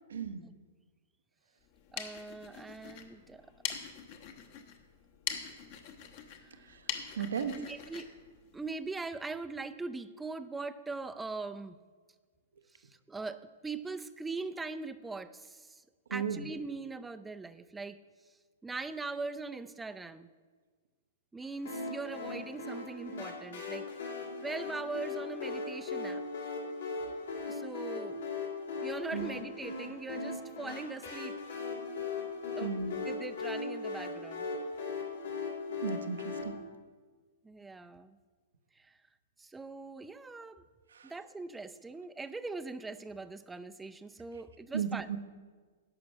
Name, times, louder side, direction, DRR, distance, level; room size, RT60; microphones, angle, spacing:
voice 1, 0.1-0.5 6.7-6.8 7.2-7.6 16.1-16.4 29.1-29.3 32.6-32.9 35.8-36.6 40.9-41.1 44.7-45.2, right 7 dB, 70° right, 9 dB, 0.9 m, -35 dB
sound 1, 1.6-9.2, left 8 dB, 50° left, 1.2 m, -43 dB
voice 2, 1.9-3.4 6.4-6.8 7.5-8.1 8.5-11.8 12.8-15.8 16.1-18.0 18.6-20.3 21.3-23.9 24.4-26.2 27.5-28.2 28.8-31.3 32.6-34.5 37.4-38.2 38.8-38.9 39.4-40.6 41.0-45.1, right 3 dB, 10° right, 12 dB, 0.5 m, -41 dB
sound 2, 21.6-36.4, left 3 dB, 70° left, 2.7 m, -38 dB
11.5 x 6.0 x 7.7 m, 1.5 s
figure-of-eight pair, 105°, 0 cm